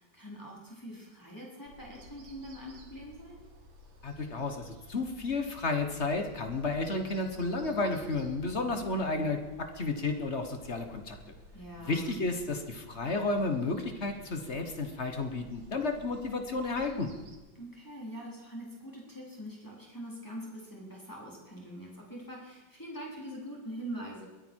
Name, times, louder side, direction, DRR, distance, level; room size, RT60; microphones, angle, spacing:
voice 1, 0.0-3.4 11.5-12.2 17.5-24.3, equal, 10° left, -4 dB, 3.9 m, -43 dB
sound 1, 1.7-17.4, equal, 85° right, 2.4 m, -54 dB
voice 2, 4.0-11.2 11.8-17.1, left 3 dB, 40° left, 6 dB, 1.4 m, -32 dB
22.0 x 9.1 x 4.6 m, 1.2 s
omnidirectional pair, 2.1 m